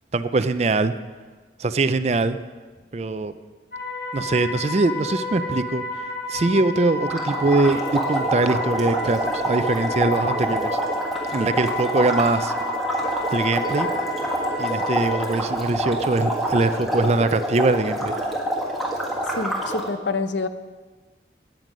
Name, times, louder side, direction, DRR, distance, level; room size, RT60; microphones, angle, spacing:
voice 1, 0.1-0.9 1.6-2.4 2.9-3.3 4.1-5.8 6.3-10.8 11.3-12.5 13.3-13.9 14.6-18.1, right 3 dB, 35° right, 12 dB, 0.4 m, -22 dB
sound 1, 3.7-15.2, left 2 dB, 60° left, 2.0 m, -31 dB
sound 2, 7.1-19.9, right 1 dB, ahead, 1.7 m, -26 dB
voice 2, 19.4-20.5, left 3 dB, 85° left, 10 dB, 0.7 m, -26 dB
13.5 x 9.2 x 5.2 m, 1.4 s
head